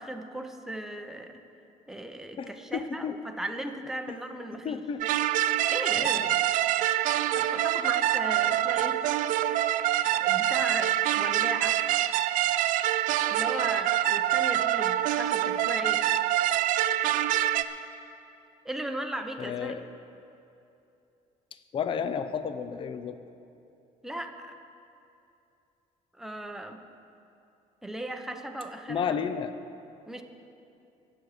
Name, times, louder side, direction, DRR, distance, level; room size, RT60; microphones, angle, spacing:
voice 1, 0.0-1.4 1.9-4.8 5.7-6.3 7.3-9.0 10.0-11.8 13.3-16.1 18.6-19.7 24.0-24.6 26.2-26.8 27.8-29.1 30.1-30.2, right 1 dB, 5° right, 5 dB, 0.8 m, -37 dB
voice 2, 2.4-3.2 4.6-5.1 6.0-6.4 19.4-19.8 21.7-23.2 28.9-29.5, left 7 dB, 40° left, 11 dB, 0.6 m, -32 dB
sound 1, 5.0-17.6, right 13 dB, 80° right, 0.5 m, -25 dB
21.5 x 8.1 x 4.9 m, 2.7 s
cardioid pair, 135°, 13 cm